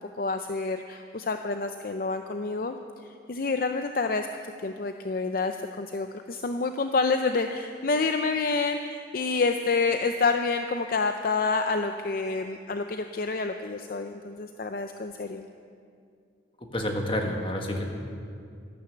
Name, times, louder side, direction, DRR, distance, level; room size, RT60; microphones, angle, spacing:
voice 1, 0.0-2.8 3.3-4.3 4.6-15.5, left 4 dB, 50° left, 7 dB, 0.5 m, -28 dB
voice 2, 16.7-17.9, left 1 dB, 30° left, 2 dB, 1.5 m, -29 dB
13.0 x 12.0 x 7.9 m, 2.3 s
head